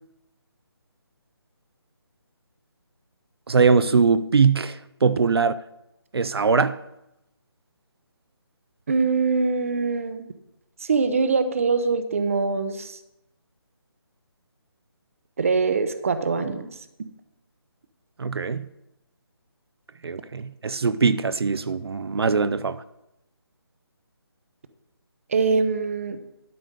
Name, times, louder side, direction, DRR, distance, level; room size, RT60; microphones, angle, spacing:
voice 1, 3.5-5.5 6.1-6.8 18.2-18.6 20.0-22.8, right 5 dB, 70° right, 0.6 m, -21 dB
voice 2, 8.9-10.2 10.8-13.0 15.4-16.7 25.3-26.2, right 4 dB, 35° right, 0.7 m, -23 dB
12.0 x 5.0 x 6.6 m
figure-of-eight pair, 170°, 13 cm